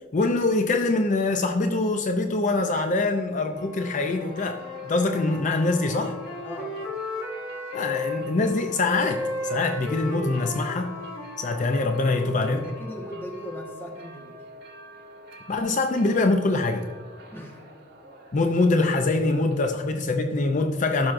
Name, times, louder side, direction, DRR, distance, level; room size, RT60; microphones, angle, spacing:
voice 1, 0.1-4.6 4.9-6.1 7.7-10.9 11.4-12.6 15.5-16.8 18.3-21.1, left 2 dB, 40° left, 5 dB, 0.5 m, -24 dB
sound 1, 3.5-19.9, left 2 dB, 55° right, 1.7 m, -46 dB
Wind instrument woodwind instrument, 4.3-8.2 8.9-12.4, left 2 dB, 80° left, 1.5 m, -34 dB
voice 2, 6.4-7.0 12.0-14.4 17.3-17.7 18.4-18.5, equal, 10° left, 0 dB, 1.3 m, -39 dB
12.0 x 6.1 x 2.5 m, 1.4 s
head